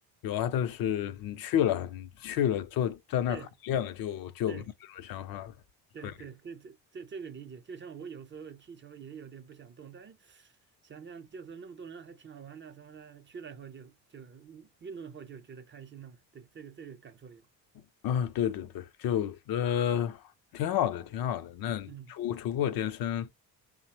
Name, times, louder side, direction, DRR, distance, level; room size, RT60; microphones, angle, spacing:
voice 1, 0.2-3.4 3.7-4.6 5.1-5.5 6.0-6.1 18.0-20.2 20.5-23.3, left 10 dB, 60° left, 0.5 m, -30 dB
voice 2, 5.9-10.6 10.8-17.5 21.9-22.1, right 6 dB, 30° right, 0.5 m, -46 dB
3.0 x 2.1 x 2.8 m
supercardioid pair, 80°, 41 cm